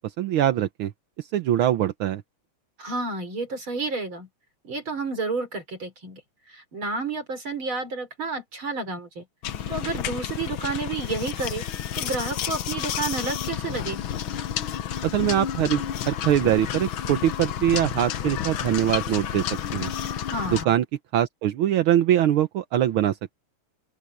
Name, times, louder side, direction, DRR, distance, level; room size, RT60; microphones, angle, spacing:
voice 1, 0.2-0.9 1.3-2.2 15.0-19.4 19.7-19.9 20.7-20.8 21.1-23.2, right 11 dB, 75° right, 1.2 m, -22 dB
voice 2, 2.8-4.3 4.6-6.2 6.5-9.2 9.7-11.6 12.0-14.0 20.3-20.7, right 3 dB, 45° right, 4.6 m, -30 dB
sound 1, 9.4-20.6, left 10 dB, 65° left, 1.3 m, -30 dB
open air
omnidirectional pair, 3.3 m